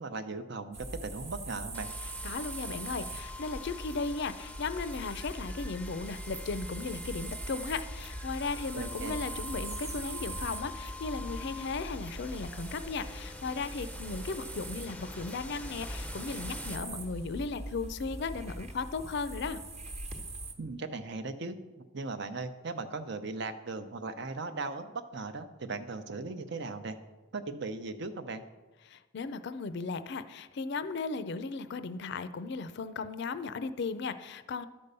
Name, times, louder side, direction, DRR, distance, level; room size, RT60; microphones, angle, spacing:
voice 1, 0.0-1.9 8.7-9.2 20.6-27.0 27.3-28.4, right 3 dB, 60° right, 9 dB, 0.8 m, -38 dB
sound 1, 0.7-20.5, right 1 dB, 35° right, 1.1 m, -41 dB
sound 2, 1.7-17.6, left 2 dB, 5° left, 0.5 m, -47 dB
voice 2, 2.2-19.6 28.9-34.7, left 4 dB, 60° left, 12 dB, 0.5 m, -36 dB
12.0 x 5.4 x 6.7 m, 1.2 s
head